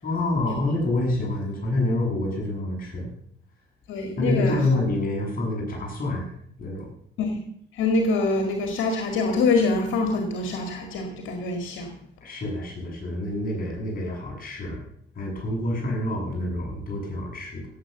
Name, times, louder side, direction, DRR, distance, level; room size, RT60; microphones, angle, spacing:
voice 1, 0.0-3.1 4.2-6.3 6.6-6.9 12.2-14.8 15.2-17.7, left 2 dB, 45° left, -1 dB, 7.5 m, -27 dB
voice 2, 3.9-4.6 7.2-7.4 7.7-12.0, left 3 dB, 85° left, 4 dB, 2.0 m, -25 dB
17.0 x 7.9 x 6.8 m, 0.67 s
cardioid pair, 90°, 20 cm